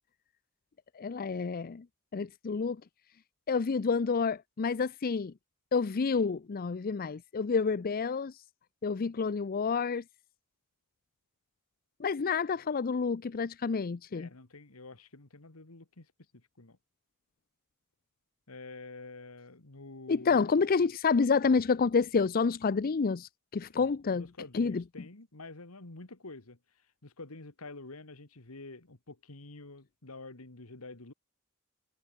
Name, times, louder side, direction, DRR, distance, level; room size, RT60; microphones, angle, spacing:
voice 1, 1.0-1.8 2.1-2.8 3.5-5.3 5.7-8.3 8.8-10.0 12.0-14.3 20.1-24.3 24.5-24.8, left 5 dB, 45° left, 0.5 m, -29 dB
voice 2, 14.1-16.8 18.5-20.5 23.7-26.6 27.0-31.1, left 3 dB, 85° left, 2.1 m, -48 dB
head